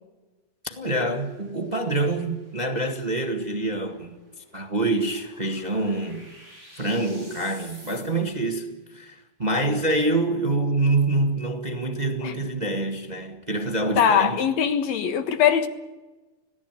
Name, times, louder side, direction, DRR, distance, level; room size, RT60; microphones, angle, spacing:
voice 1, 0.6-4.2 4.5-6.3 6.7-14.4, right 2 dB, 25° right, 0.8 m, -26 dB
sound 1, 1.1-8.5, equal, 20° left, 8.4 m, -51 dB
voice 2, 14.0-15.7, left 8 dB, 60° left, 2.4 m, -21 dB
26.0 x 17.0 x 9.1 m
omnidirectional pair, 4.0 m